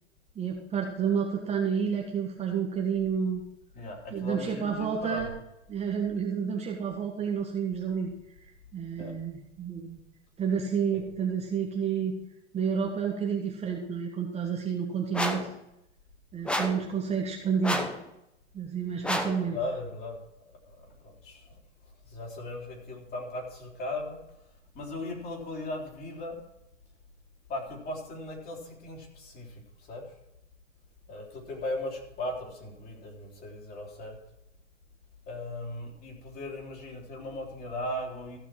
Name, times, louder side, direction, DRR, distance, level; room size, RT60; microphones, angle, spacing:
voice 1, 0.3-3.4 4.1-5.3 5.7-8.1 8.7-10.0 10.4-12.2 12.5-15.4 16.3-17.9 18.5-19.6, right 7 dB, 20° right, 0 dB, 1.6 m, -30 dB
voice 2, 3.7-5.3 9.0-9.1 16.8-16.9 19.4-20.2 20.7-21.6 22.1-24.2 24.7-26.4 27.5-30.0 31.1-34.2 35.3-38.4, left 1 dB, 25° left, 0 dB, 3.6 m, -37 dB
sound 1, 15.1-15.5 16.5-16.9 17.6-18.0 19.0-19.4, equal, 5° left, 1.0 m, -30 dB
15.0 x 6.4 x 6.1 m, 0.85 s
figure-of-eight pair, 105°, 35 cm